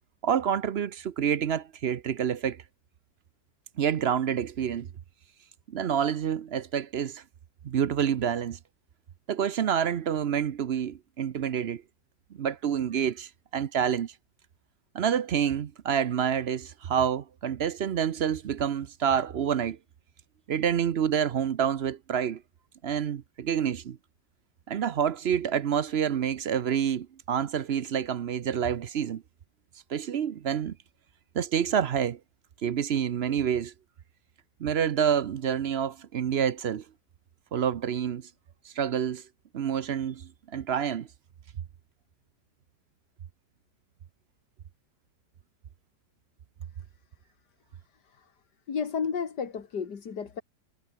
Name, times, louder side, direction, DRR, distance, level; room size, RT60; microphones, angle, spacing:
voice 1, 0.2-2.6 3.8-4.9 5.7-7.2 7.6-8.6 9.3-11.8 12.4-14.1 14.9-19.8 20.5-22.4 22.8-24.0 24.7-29.2 29.9-30.8 31.3-32.2 32.6-33.7 34.6-36.8 37.5-38.3 38.6-39.2 39.5-41.1, right 8 dB, 55° right, 0.7 m, -28 dB
voice 2, 47.9-48.3 48.7-50.4, left 6 dB, 80° left, 2.6 m, -33 dB
omnidirectional pair, 1.8 m